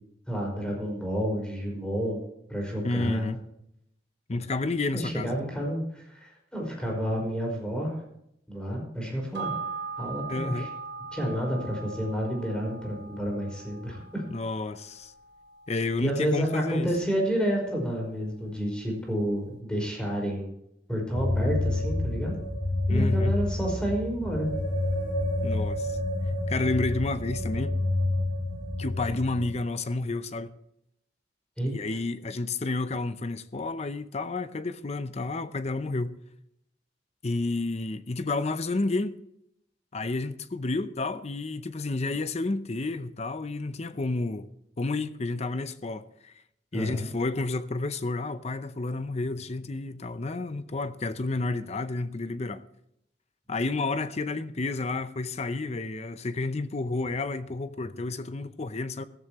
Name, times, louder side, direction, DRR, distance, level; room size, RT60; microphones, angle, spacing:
voice 1, 0.3-2.2 2.5-3.3 4.9-8.0 8.5-9.5 10.0-10.7 11.1-14.2 16.0-20.5 20.9-22.3 22.9-24.5 31.6-31.7 46.7-47.1, equal, 5° left, 5.3 m, -30 dB
voice 2, 2.8-3.4 4.3-5.3 10.3-10.7 14.3-15.1 15.7-16.9 22.9-23.4 25.4-26.0 26.5-27.8 28.8-30.5 31.7-36.2 37.2-39.1 39.9-44.5 44.8-46.3 46.7-52.6 53.5-59.1, left 3 dB, 35° left, 0.6 m, -30 dB
sound 1, 9.3-18.1 18.5-18.6, right 5 dB, 85° right, 3.0 m, -41 dB
sound 2, 21.1-29.5, left 2 dB, 70° left, 2.9 m, -28 dB
15.5 x 14.0 x 3.0 m
head